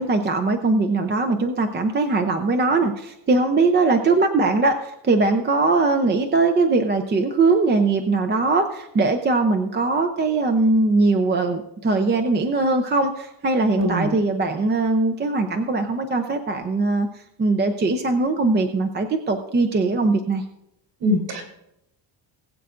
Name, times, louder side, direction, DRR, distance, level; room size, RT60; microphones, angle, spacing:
voice 1, 0.0-20.4, right 3 dB, 25° right, 6 dB, 0.6 m, -21 dB
voice 2, 13.7-14.1 21.0-21.4, left 1 dB, 55° right, 1 dB, 3.6 m, -22 dB
20.0 x 8.2 x 2.5 m, 0.82 s
cardioid pair, 170°, 47 cm